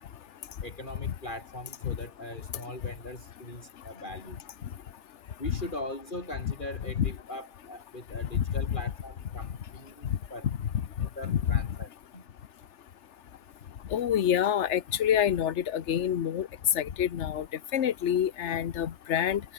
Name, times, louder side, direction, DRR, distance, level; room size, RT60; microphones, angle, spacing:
voice 1, 0.6-4.4 5.4-10.5 11.0-12.2, left 1 dB, 35° left, 5.2 m, -41 dB
voice 2, 11.2-11.6 13.9-16.5 16.7-17.4 17.7-19.4, left 9 dB, 55° left, 1.2 m, -27 dB
omnidirectional pair, 1.5 m